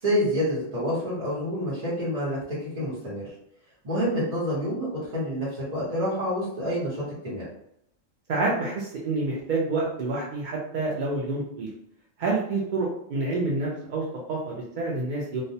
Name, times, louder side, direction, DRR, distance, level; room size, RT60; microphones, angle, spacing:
voice 1, 0.0-3.2 3.8-7.5, equal, 35° right, -9 dB, 0.9 m, -28 dB
voice 2, 8.3-11.7 12.2-15.4, right 3 dB, 60° right, -3 dB, 0.5 m, -28 dB
2.3 x 2.1 x 2.7 m, 0.75 s
omnidirectional pair, 1.3 m